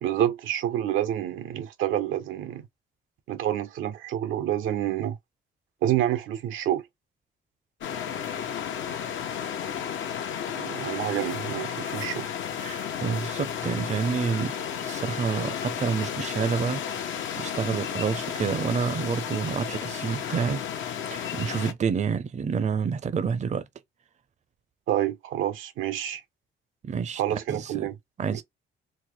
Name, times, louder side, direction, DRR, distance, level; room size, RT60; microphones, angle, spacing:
voice 1, 0.0-2.7 3.3-5.2 5.8-6.8 10.6-12.3 24.9-26.2 27.2-27.9 28.3-28.4, right 12 dB, 85° right, 0.8 m, -28 dB
sound 1, 7.8-21.7, left 8 dB, 75° left, 0.9 m, -33 dB
voice 2, 12.6-20.6 21.1-23.7 26.8-27.2 27.5-27.9 28.2-28.4, right 6 dB, 35° right, 0.6 m, -29 dB
4.0 x 2.2 x 3.1 m
cardioid pair, 90°, 20 cm